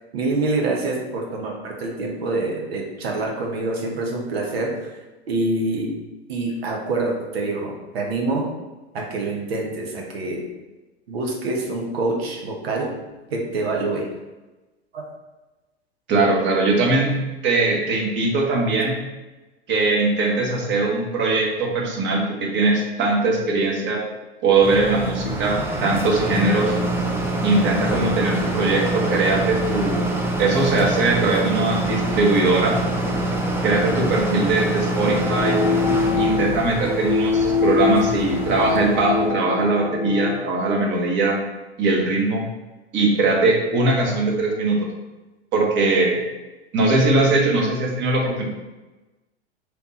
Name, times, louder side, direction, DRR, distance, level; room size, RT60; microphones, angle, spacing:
voice 1, 0.1-4.9 5.3-5.9 6.3-8.5 8.9-10.4 11.1-12.9 13.3-14.1 14.9-15.1, right 2 dB, 70° right, -1 dB, 1.0 m, -26 dB
voice 2, 16.1-17.1 17.4-18.9 19.7-24.0 24.4-26.7 27.4-30.1 30.4-32.8 33.6-35.6 36.2-41.4 41.8-42.4 42.9-44.9 45.5-46.2 46.7-48.4, right 3 dB, 35° right, -1 dB, 1.1 m, -20 dB
sound 1, 24.6-39.3, right 1 dB, 5° right, 0.5 m, -25 dB
sound 2, 35.0-40.4, left 5 dB, 70° left, 0.7 m, -24 dB
3.4 x 3.0 x 4.1 m, 1.1 s
figure-of-eight pair, 90°, 32 cm